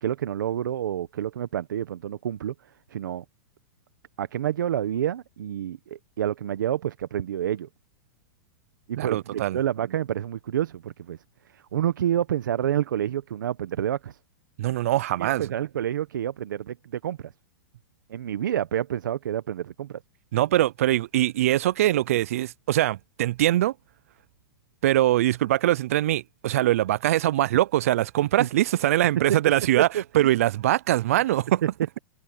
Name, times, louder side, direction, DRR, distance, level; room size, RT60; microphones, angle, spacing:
voice 1, 0.0-2.5 2.9-3.2 4.2-7.7 8.9-11.2 11.5-14.2 15.2-17.3 18.1-20.0 28.4-28.5 29.3-29.4 29.9-30.3 31.6-31.7, right 10 dB, 80° right, 1.0 m, -28 dB
voice 2, 9.0-9.6 14.6-15.5 20.3-23.7 24.8-29.9 30.1-31.6, right 14 dB, 50° right, 0.3 m, -22 dB
supercardioid pair, 175°, 10 cm